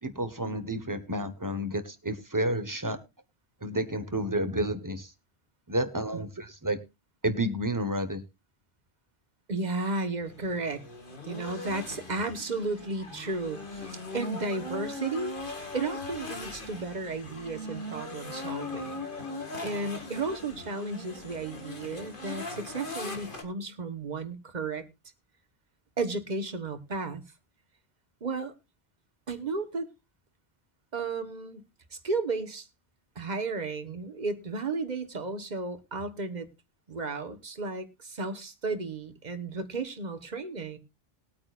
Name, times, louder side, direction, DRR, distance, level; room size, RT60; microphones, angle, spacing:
voice 1, 0.0-3.0 3.6-5.1 5.7-6.8 7.2-8.2, right 1 dB, 20° right, 1.2 m, -30 dB
voice 2, 9.5-10.8 11.2-15.4 15.7-19.1 19.6-24.8 26.0-27.2 28.2-28.5 29.3-29.9 30.9-32.7 33.1-36.5 36.9-40.8, right 3 dB, 45° right, 1.4 m, -34 dB
sound 1, 10.2-23.4, left 2 dB, 55° left, 2.2 m, -39 dB
20.5 x 8.7 x 2.4 m
omnidirectional pair, 1.1 m